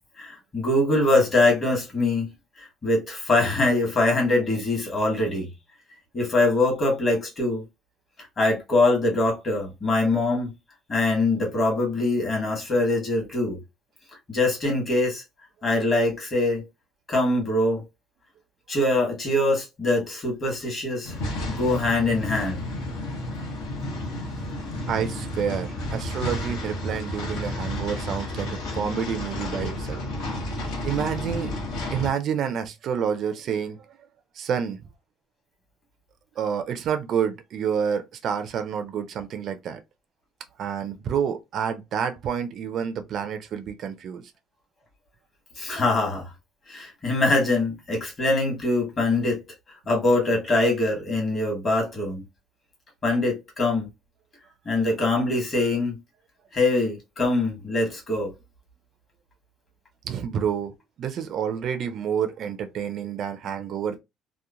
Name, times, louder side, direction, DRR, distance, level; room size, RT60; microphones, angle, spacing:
voice 1, 0.2-2.3 2.6-5.5 6.1-7.6 8.4-10.5 10.9-13.6 14.3-15.2 15.6-16.7 17.1-17.8 18.7-21.1 21.5-22.7 45.6-46.3 46.7-49.4 49.9-52.2 53.0-53.9 54.6-56.0 56.5-58.3, left 2 dB, 30° left, 1.2 m, -23 dB
sound 1, 21.0-32.1, left 1 dB, 90° left, 1.0 m, -31 dB
voice 2, 24.9-30.0 30.8-31.5 31.9-33.8 34.4-34.8 36.4-39.8 40.6-44.2 60.1-60.7 61.0-64.0, right 8 dB, 45° right, 0.3 m, -28 dB
2.9 x 2.0 x 2.4 m
cardioid pair, 155°, 0 cm